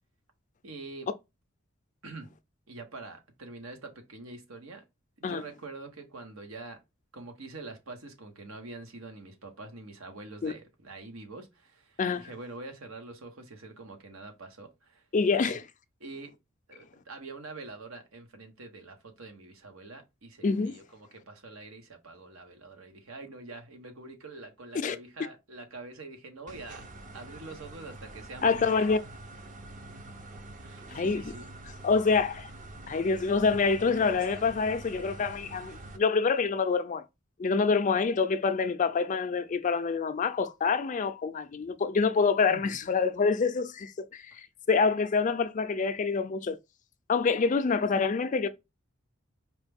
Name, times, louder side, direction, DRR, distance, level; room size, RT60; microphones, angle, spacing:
voice 1, 0.6-1.1 2.0-2.4 2.7-4.8 5.2-6.8 7.1-15.0 15.5-15.6 16.0-16.3 16.7-26.9 27.1-28.9 30.6-31.5 42.5-42.8, right 3 dB, 90° right, 1.2 m, -45 dB
voice 2, 12.0-12.3 15.1-15.6 20.4-20.7 24.7-25.0 28.4-29.0 30.9-31.3 31.8-32.5 32.9-37.0 37.4-44.4 44.7-46.6 47.1-48.5, left 4 dB, 40° left, 0.4 m, -26 dB
sound 1, 26.5-36.0, right 2 dB, 40° right, 0.6 m, -46 dB
4.7 x 2.3 x 3.4 m
head